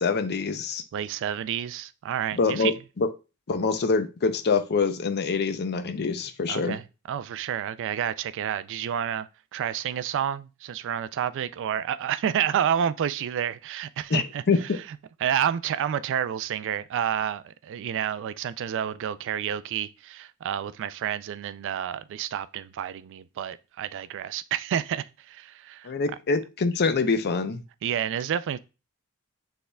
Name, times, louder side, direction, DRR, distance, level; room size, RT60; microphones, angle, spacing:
voice 1, 0.0-0.8 2.3-3.1 3.5-6.8 14.1-14.6 25.8-27.6, left 4 dB, 50° left, 0.5 m, -25 dB
voice 2, 0.9-2.7 6.5-14.7 15.2-25.9 27.8-28.6, right 9 dB, 55° right, 0.3 m, -29 dB
6.4 x 3.5 x 2.2 m
head